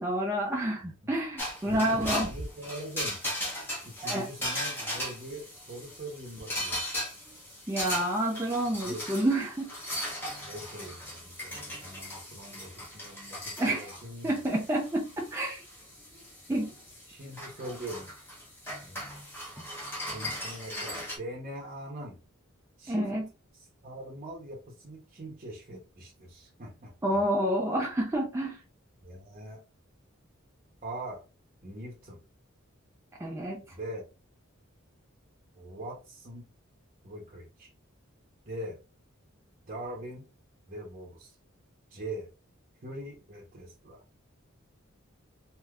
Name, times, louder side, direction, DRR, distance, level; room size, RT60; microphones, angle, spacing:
voice 1, 0.0-2.3 4.0-4.3 7.7-9.7 13.6-14.0 14.2-15.6 16.5-16.7 22.9-23.3 27.0-28.6 33.2-33.6, right 1 dB, 15° right, 0.4 m, -29 dB
sound 1, 1.4-21.2, equal, 10° left, 1.0 m, -38 dB
voice 2, 1.6-3.2 3.8-6.8 8.7-9.0 10.4-14.3 16.5-16.6 17.1-18.1 18.8-19.0 20.0-22.2 22.8-23.1 23.5-27.2 29.0-29.6 30.8-31.2 31.6-32.2 33.7-34.0 35.5-36.5 37.0-37.7 38.4-38.8 39.7-40.3 40.7-41.4 41.9-42.3 42.8-44.0, right 1 dB, 40° right, 0.7 m, -42 dB
3.3 x 2.6 x 2.3 m
head